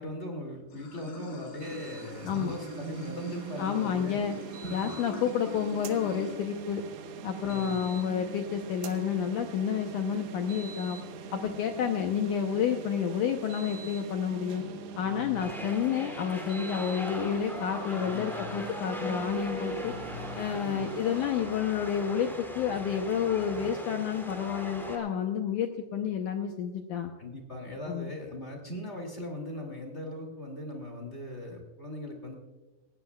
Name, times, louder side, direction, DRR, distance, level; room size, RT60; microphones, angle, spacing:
voice 1, 0.0-4.2 4.6-4.9 7.4-7.8 15.0-15.5 17.9-18.5 19.8-20.9 27.2-32.3, left 1 dB, 20° left, 1 dB, 1.9 m, -40 dB
Water / Sink (filling or washing), 0.7-6.4, left 5 dB, 65° left, 5.2 m, -45 dB
sound 1, 1.6-21.3, right 6 dB, 90° right, 3.3 m, -42 dB
voice 2, 3.6-4.4 4.7-6.8 7.2-11.0 11.3-14.6 15.0-19.9 20.4-27.1 27.9-28.1, left 8 dB, 85° left, 4 dB, 1.7 m, -30 dB
sound 2, 15.4-25.0, equal, ahead, 1.3 m, -40 dB
19.0 x 17.0 x 2.3 m, 1.3 s
omnidirectional pair, 4.7 m